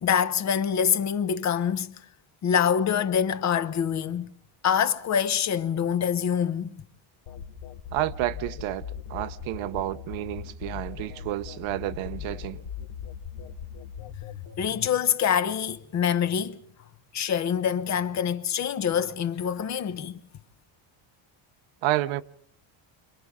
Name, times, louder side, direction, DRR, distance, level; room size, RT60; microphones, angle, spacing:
voice 1, 0.0-2.0 2.4-4.3 4.6-6.7 14.6-16.6 17.1-20.2, left 8 dB, 35° left, 0.9 m, -25 dB
sound 1, 7.3-14.9, left 8 dB, 75° left, 2.6 m, -39 dB
voice 2, 7.9-12.6 21.8-22.2, right 15 dB, 80° right, 1.0 m, -30 dB
30.0 x 26.0 x 3.7 m
cardioid pair, 180°, 47 cm